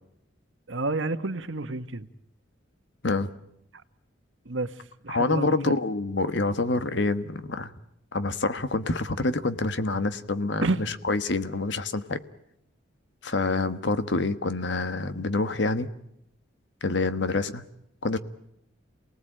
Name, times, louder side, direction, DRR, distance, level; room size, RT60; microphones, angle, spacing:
voice 1, 0.7-2.1 4.4-4.8 5.0-5.7 10.6-10.8, right 2 dB, 80° right, 11 dB, 1.3 m, -29 dB
voice 2, 5.1-7.7 8.1-12.2 13.2-15.9 16.8-17.7 18.0-18.2, left 3 dB, 65° left, 11 dB, 1.4 m, -27 dB
28.0 x 19.0 x 9.0 m, 0.81 s
head